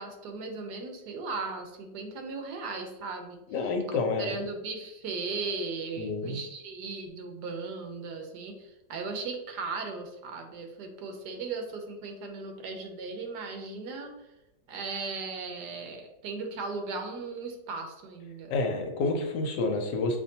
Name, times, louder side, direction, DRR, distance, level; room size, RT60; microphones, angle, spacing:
voice 1, 0.0-3.4 3.9-14.1 14.7-18.6, right 4 dB, 70° right, 3 dB, 1.3 m, -37 dB
voice 2, 3.5-4.3 6.0-6.4 18.5-20.2, left 3 dB, 85° left, 3 dB, 1.4 m, -29 dB
6.7 x 2.6 x 2.8 m, 0.94 s
omnidirectional pair, 1.9 m